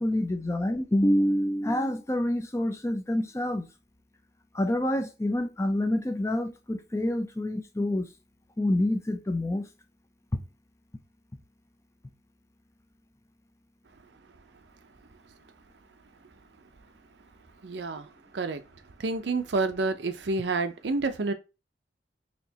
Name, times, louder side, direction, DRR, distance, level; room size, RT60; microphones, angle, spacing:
voice 1, 0.0-3.7 4.5-8.1 8.6-9.7 10.3-10.4, left 1 dB, 15° left, 0.4 m, -27 dB
voice 2, 17.6-18.1 18.3-18.6 19.0-21.3, right 3 dB, 70° right, 0.6 m, -29 dB
4.3 x 3.0 x 2.8 m
head